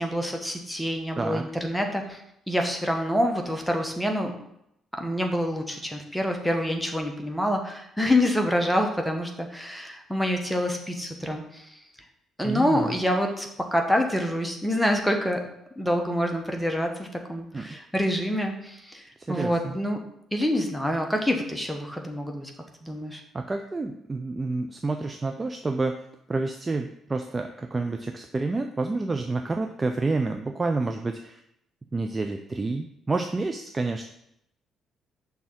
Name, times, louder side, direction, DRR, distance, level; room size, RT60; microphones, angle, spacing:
voice 1, 0.0-2.2 2.5-4.3 5.0-11.8 12.4-15.4 15.8-20.0 20.3-22.5 22.8-23.2, equal, 5° left, 3 dB, 1.2 m, -26 dB
voice 2, 1.2-1.5 12.4-12.9 17.5-17.8 19.2-19.8 23.3-26.0 26.3-31.4 31.9-34.0, right 3 dB, 25° right, 5 dB, 0.4 m, -29 dB
6.1 x 3.6 x 5.7 m, 0.78 s
figure-of-eight pair, 45°, 0 cm